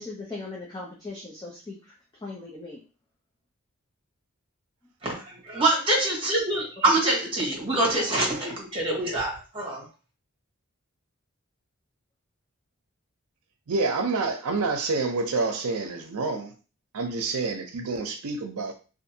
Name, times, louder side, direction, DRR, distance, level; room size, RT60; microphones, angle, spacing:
voice 1, 0.0-1.9 2.2-2.8 6.8-6.9, left 3 dB, 20° left, -5 dB, 0.5 m, -38 dB
voice 2, 5.0-9.8, right 2 dB, 25° right, -4 dB, 1.1 m, -25 dB
voice 3, 13.7-16.5 16.9-18.7, right 3 dB, 85° right, 5 dB, 0.6 m, -28 dB
2.6 x 2.5 x 2.7 m, 0.34 s
head